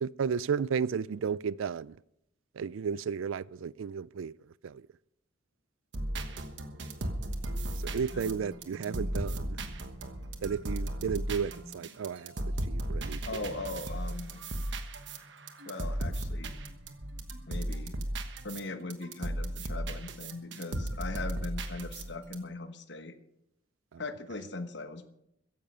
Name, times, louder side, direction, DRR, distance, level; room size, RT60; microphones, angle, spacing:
voice 1, 0.0-2.0 2.6-4.3 4.6-4.8 7.8-9.6 10.4-13.5 23.9-24.0, right 6 dB, 85° right, 0.4 m, -33 dB
sound 1, 5.9-18.7 18.9-22.4, right 1 dB, 65° right, 1.2 m, -36 dB
voice 2, 13.3-14.4 15.6-16.5 17.5-17.9 18.4-23.1 24.0-25.1, left 3 dB, 60° left, 1.1 m, -39 dB
15.0 x 10.5 x 5.5 m
head